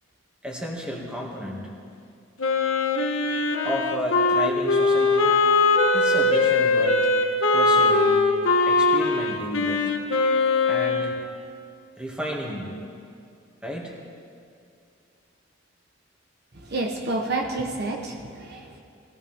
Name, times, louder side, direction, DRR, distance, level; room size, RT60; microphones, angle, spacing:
voice 1, 0.4-1.7 3.6-5.3 5.9-7.1 7.5-8.2 8.7-9.9 10.6-11.2 12.0-12.8 13.6-14.0, equal, 5° right, -3 dB, 2.1 m, -32 dB
Wind instrument woodwind instrument, 2.4-11.3, left 3 dB, 85° left, 1.2 m, -21 dB
voice 2, 16.6-18.8, right 2 dB, 55° right, 2 dB, 1.1 m, -29 dB
21.0 x 16.0 x 3.6 m, 2.4 s
head